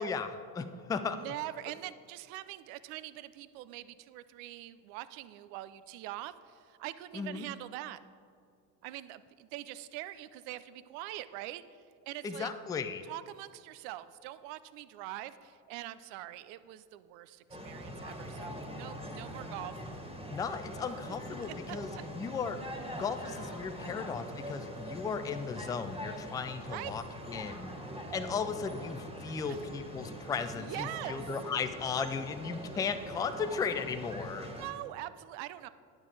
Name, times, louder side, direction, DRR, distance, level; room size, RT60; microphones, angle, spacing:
voice 1, 0.0-1.2 7.1-7.5 12.2-13.0 20.3-22.6 22.9-27.7 28.1-34.5, left 5 dB, 10° left, 9 dB, 0.3 m, -36 dB
voice 2, 0.9-8.0 8.8-11.6 12.1-12.5 13.1-19.7 21.1-21.2 21.7-21.8 26.7-27.0 29.3-29.6 30.6-31.3 34.6-35.7, right 15 dB, 60° right, 15 dB, 0.6 m, -43 dB
sound 1, 17.5-34.7, equal, 10° right, 1.8 m, -43 dB
10.0 x 7.4 x 4.8 m, 2.3 s
hypercardioid pair, 75°, 50 cm